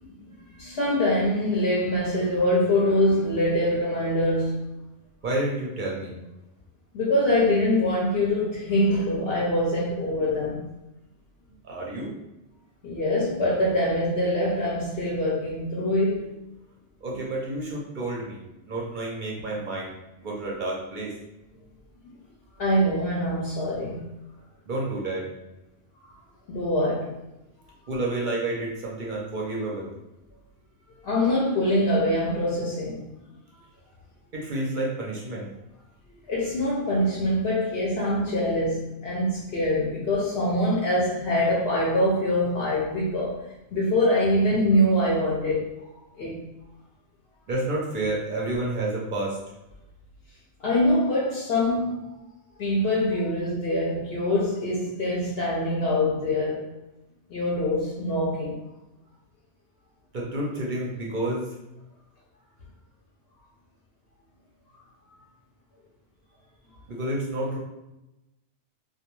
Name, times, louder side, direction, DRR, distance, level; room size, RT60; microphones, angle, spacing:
voice 1, 0.0-4.7 6.9-10.6 12.8-16.4 22.0-22.1 22.6-24.0 26.5-27.2 31.0-33.0 36.3-43.4 43.7-45.8 46.2-46.4 50.6-52.0 52.6-56.7 57.3-58.6, left 1 dB, 65° left, -5 dB, 0.8 m, -24 dB
voice 2, 5.2-6.1 11.6-12.1 17.0-18.4 18.7-19.9 20.2-21.1 24.7-25.3 27.9-29.9 34.3-35.5 47.5-49.4 60.1-61.4 66.9-67.6, right 2 dB, 55° right, -3 dB, 0.6 m, -29 dB
2.3 x 2.2 x 2.9 m, 0.96 s
omnidirectional pair, 1.2 m